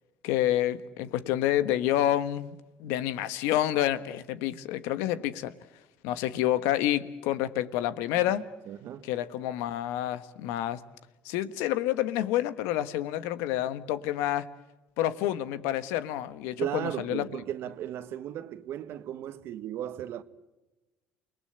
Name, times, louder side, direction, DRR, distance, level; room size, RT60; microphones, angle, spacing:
voice 1, 0.2-5.5 6.0-8.4 9.0-10.8 11.2-14.5 15.0-17.3, left 13 dB, 85° left, 1.2 m, -28 dB
voice 2, 8.7-9.1 16.6-20.2, right 11 dB, 65° right, 1.4 m, -36 dB
29.0 x 20.0 x 7.8 m
supercardioid pair, 75°, 4 cm